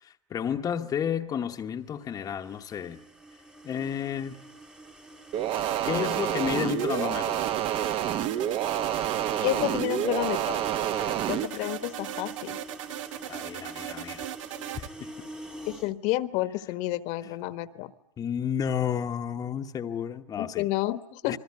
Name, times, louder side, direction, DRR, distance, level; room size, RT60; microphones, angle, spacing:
voice 1, 0.0-3.0 3.6-4.4 5.8-7.4 11.0-11.3 13.2-14.3 14.6-15.1 18.2-20.7 21.2-21.4, left 8 dB, 20° left, 1.1 m, -32 dB
sound 1, 2.0-15.9, right 2 dB, 5° right, 1.2 m, -46 dB
sound 2, 5.3-11.5, right 10 dB, 35° right, 1.0 m, -28 dB
sound 3, 5.5-14.9, right 13 dB, 75° right, 1.1 m, -39 dB
voice 2, 9.4-10.6 11.3-12.6 15.7-17.9 20.4-21.4, left 16 dB, 45° left, 1.3 m, -30 dB
27.5 x 21.0 x 9.6 m
supercardioid pair, 145°, 17 cm